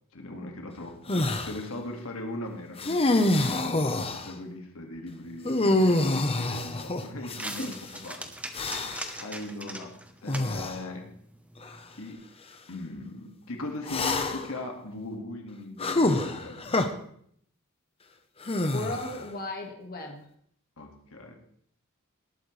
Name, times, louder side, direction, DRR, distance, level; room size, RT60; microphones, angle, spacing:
voice 1, 0.1-8.3 9.2-9.9 10.2-11.1 12.0-12.2 12.7-16.9 20.8-21.4, left 2 dB, 75° left, 3 dB, 2.0 m, -39 dB
sound 1, 1.1-1.6 2.8-4.3 5.4-7.8 8.5-9.2 10.3-10.8 11.6-11.7 13.9-14.6 15.8-16.9 18.4-19.3, left 2 dB, 25° left, 0.9 m, -26 dB
sound 2, 5.2-12.1, right 1 dB, 5° right, 1.0 m, -43 dB
voice 2, 18.6-20.3, left 1 dB, 45° left, 1 dB, 1.8 m, -35 dB
19.0 x 8.7 x 3.3 m, 0.64 s
head